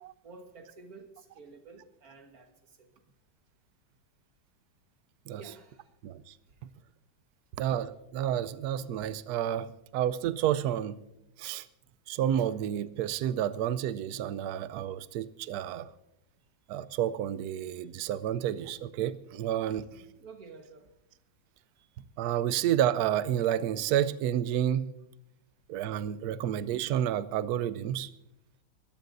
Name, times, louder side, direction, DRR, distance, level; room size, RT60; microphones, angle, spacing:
voice 1, 0.2-3.0 5.3-5.9 6.5-6.6 19.9-20.9 21.8-22.0, right 4 dB, 55° right, 5 dB, 2.0 m, -51 dB
voice 2, 6.0-6.3 7.6-11.0 11.4-11.7 12.1-15.9 16.7-19.9 22.2-24.9 25.7-28.1, right 10 dB, 70° right, 15 dB, 1.1 m, -30 dB
22.5 x 14.5 x 2.6 m, 0.86 s
omnidirectional pair, 1.9 m